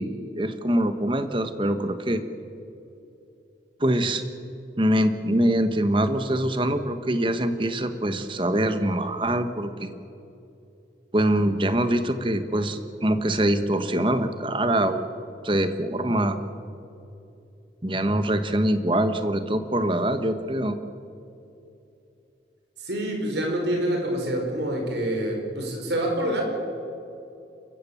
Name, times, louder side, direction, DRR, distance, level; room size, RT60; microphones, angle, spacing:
voice 1, 0.0-2.2 3.8-4.2 4.8-10.0 11.1-15.1 15.4-16.4 17.8-20.8, right 1 dB, 30° right, 9 dB, 1.3 m, -24 dB
voice 2, 22.8-26.4, right 1 dB, 75° right, 1 dB, 5.1 m, -26 dB
30.0 x 15.5 x 7.2 m, 2.8 s
head